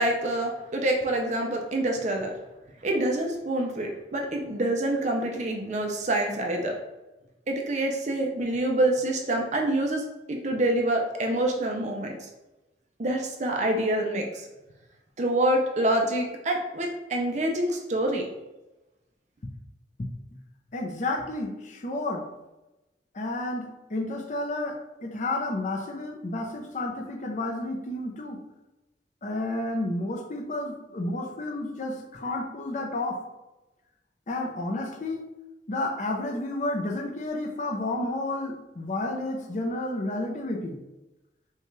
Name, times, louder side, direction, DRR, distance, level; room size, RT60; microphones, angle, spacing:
voice 1, 0.0-2.3 2.8-6.8 7.5-12.2 13.0-14.5 15.2-18.3, right 1 dB, 40° right, 1 dB, 0.5 m, -26 dB
voice 2, 20.7-22.3 23.1-28.4 29.2-33.2 34.3-35.2 35.7-40.8, left 2 dB, 45° left, 1 dB, 0.6 m, -31 dB
5.5 x 2.4 x 3.1 m, 1.0 s
head